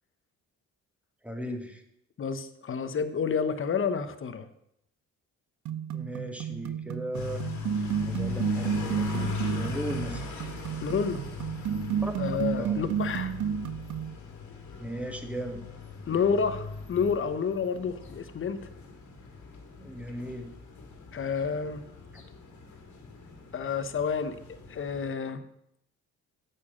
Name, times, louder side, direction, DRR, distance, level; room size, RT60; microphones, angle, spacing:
voice 1, 1.2-1.8 5.9-7.4 8.0-10.2 12.0-12.1 12.6-12.8 14.8-15.6 16.1-16.2 19.8-20.5, right 1 dB, 5° right, 4 dB, 1.6 m, -37 dB
voice 2, 2.2-4.5 10.8-11.2 12.2-13.4 16.1-18.7 21.1-21.8 23.5-24.4 24.7-25.4, left 6 dB, 45° left, 11 dB, 1.0 m, -29 dB
sound 1, 5.7-14.1, right 8 dB, 75° right, 0.6 m, -32 dB
sound 2, 7.1-25.1, left 6 dB, 70° left, 2.3 m, -39 dB
8.6 x 7.2 x 6.3 m, 0.76 s
cardioid pair, 90°, 30 cm